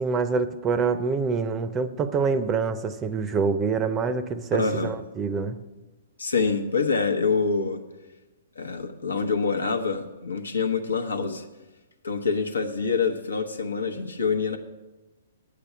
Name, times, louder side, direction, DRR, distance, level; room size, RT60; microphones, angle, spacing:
voice 1, 0.0-5.6, right 5 dB, 20° right, 0.5 m, -26 dB
voice 2, 4.5-4.9 6.2-7.8 8.6-11.4 12.0-14.6, left 5 dB, 90° left, 0.9 m, -26 dB
8.4 x 6.8 x 6.8 m
hypercardioid pair, 125°, 0 cm